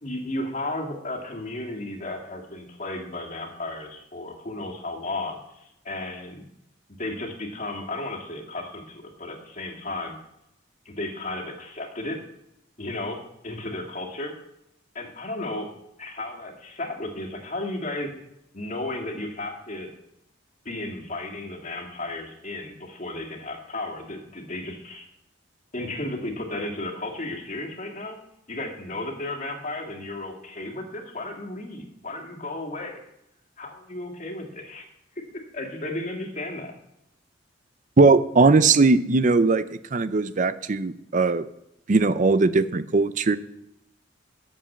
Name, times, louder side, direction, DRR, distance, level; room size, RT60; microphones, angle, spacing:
voice 1, 0.0-6.5 7.0-10.2 10.9-12.2 12.8-14.3 14.9-15.7 16.0-18.1 18.5-19.9 20.7-25.1 25.7-28.2 28.5-33.0 33.6-34.9 35.5-36.7, left 2 dB, 40° left, 2 dB, 2.0 m, -34 dB
voice 2, 38.0-39.6 39.9-41.4 41.9-43.4, right 3 dB, 40° right, 14 dB, 0.5 m, -19 dB
8.7 x 7.4 x 7.2 m, 0.82 s
head